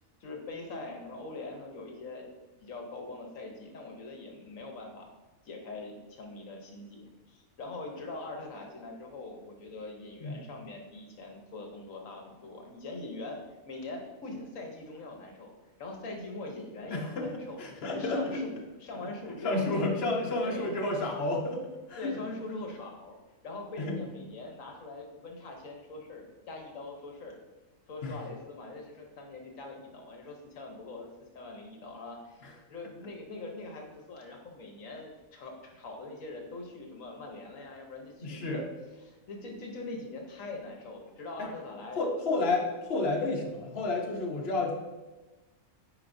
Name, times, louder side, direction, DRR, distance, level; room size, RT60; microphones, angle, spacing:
voice 1, 0.2-2.3 2.6-5.1 5.4-13.4 13.7-15.5 15.8-20.0 20.4-20.7 22.0-23.2 23.4-27.4 27.9-31.1 31.3-38.6 39.1-42.0, left 2 dB, 70° left, 2 dB, 1.3 m, -43 dB
voice 2, 16.9-17.3 17.6-18.4 19.4-22.2 23.8-24.0 28.0-28.1 38.2-38.6 41.4-41.5 41.9-44.7, left 2 dB, 50° left, -1 dB, 1.1 m, -31 dB
9.3 x 5.0 x 2.6 m, 1.2 s
omnidirectional pair, 1.4 m